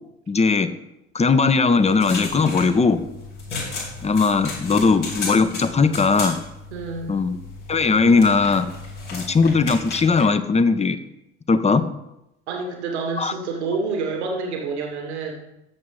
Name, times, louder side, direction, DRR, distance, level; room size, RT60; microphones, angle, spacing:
voice 1, 0.3-0.7 1.1-3.0 4.0-6.4 7.1-7.4 7.7-8.7 9.1-11.0 11.5-11.8 13.2-13.3, left 4 dB, 20° left, 11 dB, 1.0 m, -19 dB
sound 1, 1.7-10.2, left 3 dB, 80° left, 3.5 m, -34 dB
voice 2, 6.7-7.3 8.0-8.3 12.5-15.3, right 4 dB, 70° right, 1 dB, 2.3 m, -28 dB
16.0 x 7.5 x 3.9 m, 0.88 s
figure-of-eight pair, 65°, 34 cm